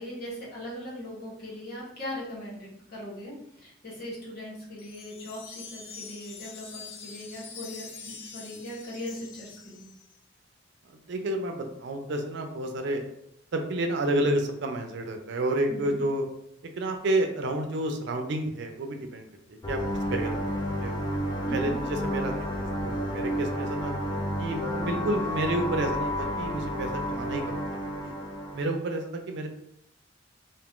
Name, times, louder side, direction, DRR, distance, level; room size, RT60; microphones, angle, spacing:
voice 1, 0.0-9.9 15.7-16.0 21.4-21.8, left 1 dB, 50° left, -5 dB, 1.1 m, -39 dB
Wind chime, 4.8-10.2, left 6 dB, 80° left, 0.5 m, -45 dB
voice 2, 10.9-13.1 13.5-16.2 16.8-19.8 20.1-21.0 21.5-23.9 24.4-28.1 28.5-29.5, right 1 dB, 65° right, 4 dB, 0.4 m, -30 dB
sound 1, 19.6-28.6, equal, 20° left, 0.4 m, -31 dB
2.5 x 2.4 x 3.5 m, 0.76 s
head